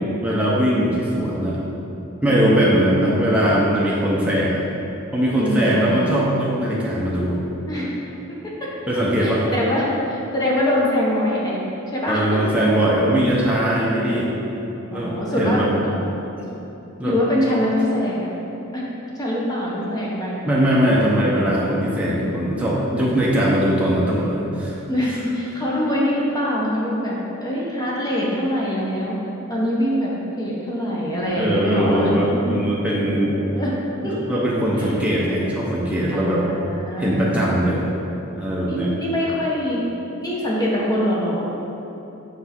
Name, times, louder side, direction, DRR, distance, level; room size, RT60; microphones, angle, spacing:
voice 1, 0.2-1.6 2.2-4.6 5.1-7.4 8.9-9.5 12.1-14.3 14.9-15.7 16.4-16.5 17.0-17.1 20.4-24.8 31.3-33.4 34.0-36.5 37.0-37.8 38.3-38.9, equal, 5° right, -6 dB, 0.7 m, -20 dB
voice 2, 2.3-2.6 3.9-4.4 5.4-6.0 7.7-7.9 8.6-8.7 9.2-11.6 11.9-12.5 13.7-14.2 14.9-16.3 17.0-18.3 18.7-18.8 19.2-20.4 21.0-21.4 24.9-27.2 27.4-29.1 29.5-30.1 30.4-32.5 33.1-33.7 34.0-34.4 34.8-34.9 36.1-37.8 38.7-39.9 40.2-41.4, equal, 20° left, -5 dB, 0.9 m, -24 dB
5.9 x 4.6 x 4.3 m, 3.0 s
head